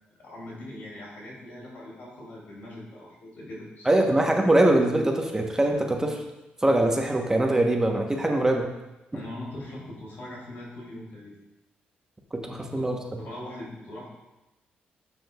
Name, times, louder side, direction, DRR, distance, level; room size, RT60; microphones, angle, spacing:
voice 1, 0.2-3.9 9.1-11.4 12.5-14.1, left 1 dB, 70° left, -4 dB, 2.7 m, -41 dB
voice 2, 3.8-6.2 6.6-8.7 9.1-9.2 12.3-13.0, right 1 dB, 15° right, 2 dB, 1.0 m, -22 dB
10.5 x 6.2 x 2.4 m, 0.99 s
cardioid pair, 80°, 4 cm